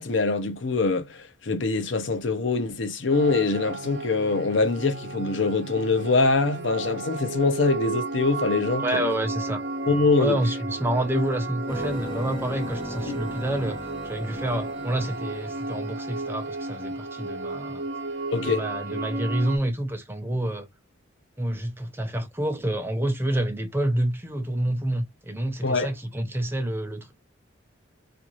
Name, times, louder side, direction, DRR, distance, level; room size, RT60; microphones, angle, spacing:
voice 1, 0.0-9.0 9.9-10.4 18.3-18.6 25.6-25.9, left 3 dB, 65° left, 0.6 m, -24 dB
sound 1, 3.1-19.6, right 2 dB, 60° right, 0.9 m, -33 dB
voice 2, 8.8-9.6 10.2-17.8 18.4-20.7 21.4-27.1, right 1 dB, 10° right, 0.6 m, -28 dB
sound 2, 11.7-15.9, left 1 dB, 25° left, 1.4 m, -39 dB
3.6 x 2.6 x 3.0 m
head